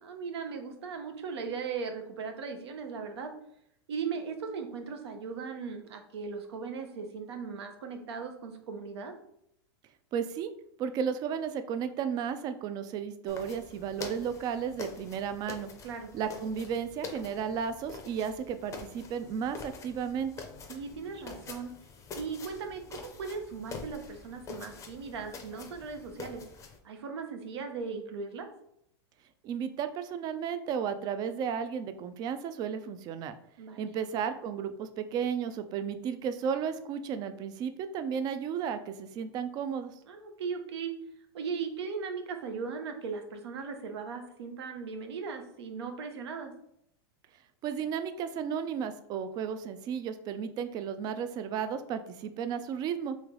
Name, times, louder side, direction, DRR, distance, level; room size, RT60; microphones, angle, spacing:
voice 1, 0.0-3.3 3.9-9.2 15.8-16.1 20.7-21.7 22.1-26.4 26.8-28.5 33.6-33.9 40.1-40.9 41.3-46.5, right 5 dB, 80° right, 5 dB, 0.8 m, -38 dB
voice 2, 10.1-10.5 10.8-15.7 16.1-20.3 29.4-33.3 33.8-39.9 47.6-53.2, right 7 dB, 30° right, 10 dB, 0.4 m, -33 dB
sound 1, 13.3-26.8, left 4 dB, 20° left, 0.6 m, -46 dB
3.2 x 3.0 x 3.7 m, 0.74 s
supercardioid pair, 135°, 14 cm